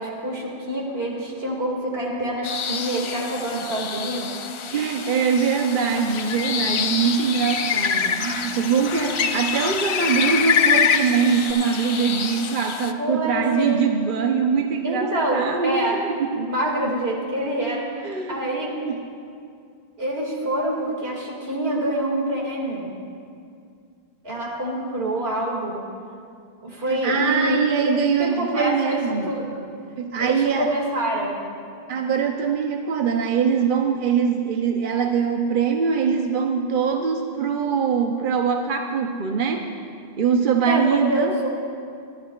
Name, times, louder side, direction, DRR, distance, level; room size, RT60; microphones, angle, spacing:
voice 1, 0.0-4.3 13.0-13.9 14.8-16.0 16.3-18.8 20.0-22.9 24.2-25.8 26.6-29.0 29.3-29.6 30.2-31.3 40.7-41.5, right 1 dB, 75° right, -2 dB, 2.4 m, -26 dB
sound 1, 2.4-12.9, left 6 dB, 55° left, 0.3 m, -33 dB
voice 2, 4.7-16.5 18.0-18.4 18.9-19.0 26.9-29.3 30.0-30.7 31.9-39.7 40.2-41.3, right 6 dB, 60° right, 4 dB, 0.8 m, -23 dB
Bird, 6.0-11.5, left 7 dB, 90° left, 0.9 m, -23 dB
22.5 x 12.5 x 2.3 m, 2.3 s
omnidirectional pair, 1.0 m